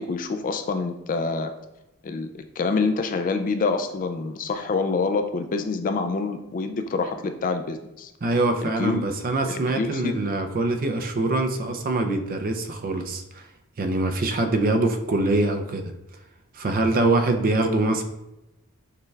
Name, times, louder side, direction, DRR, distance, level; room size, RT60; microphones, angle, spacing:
voice 1, 0.0-1.5 2.0-8.1 8.6-9.0 9.5-10.2, left 4 dB, 40° left, 8 dB, 0.3 m, -26 dB
voice 2, 8.2-13.4 13.8-15.9 16.5-18.0, right 2 dB, 40° right, 6 dB, 0.5 m, -24 dB
6.6 x 2.3 x 3.2 m, 0.91 s
head